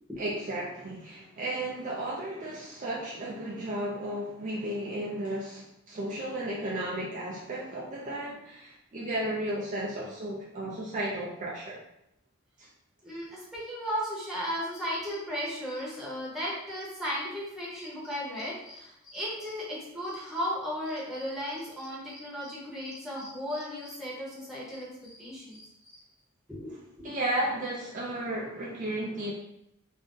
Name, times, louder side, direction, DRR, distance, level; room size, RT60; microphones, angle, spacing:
voice 1, 0.2-11.8 12.6-12.7 27.0-29.3, right 1 dB, 35° right, -5 dB, 0.4 m, -34 dB
voice 2, 13.0-24.9 25.2-25.6 26.5-26.7 27.0-27.1, equal, ahead, -7 dB, 0.9 m, -35 dB
sound 1, 14.7-26.2, left 1 dB, 35° left, 1.3 m, -52 dB
2.5 x 2.2 x 3.6 m, 0.82 s
head